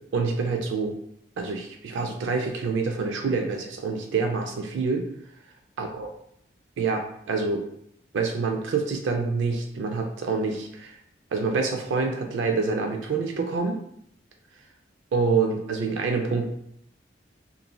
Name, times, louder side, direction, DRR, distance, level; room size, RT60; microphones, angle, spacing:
voice 1, 0.1-0.9 1.4-5.1 5.8-6.1 6.8-7.6 8.1-11.0 11.3-13.8 15.1-16.5, right 4 dB, 85° right, 4 dB, 0.3 m, -26 dB
3.0 x 2.6 x 2.2 m, 0.71 s
head